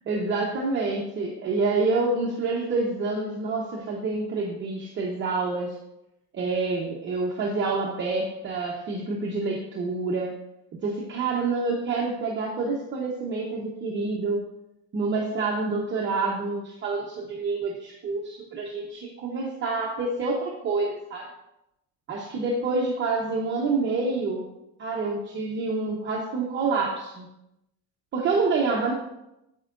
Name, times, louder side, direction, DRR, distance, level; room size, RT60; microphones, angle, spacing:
voice 1, 0.1-5.8 6.3-10.4 10.8-14.4 14.9-21.3 22.1-24.5 24.8-27.3 28.1-28.9, right 3 dB, 30° right, -2 dB, 0.9 m, -27 dB
8.2 x 8.2 x 2.5 m, 0.87 s
cardioid pair, 165°, 36 cm